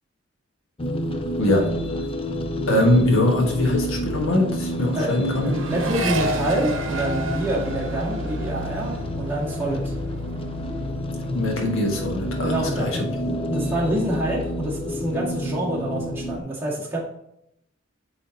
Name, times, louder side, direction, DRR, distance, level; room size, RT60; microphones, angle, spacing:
sound 1, 0.8-16.4, equal, 25° left, 0.5 m, -29 dB
voice 1, 1.4-1.7 2.7-5.6 11.2-13.1, left 1 dB, 75° left, 1 dB, 1.5 m, -22 dB
Accelerating revving vroom, 3.1-3.2 3.4-10.9 11.2-11.9, right 1 dB, 65° right, 1.0 m, -33 dB
voice 2, 5.5-10.0 12.4-17.0, right 1 dB, 10° right, -6 dB, 2.0 m, -27 dB
8.7 x 3.9 x 2.9 m, 0.77 s
head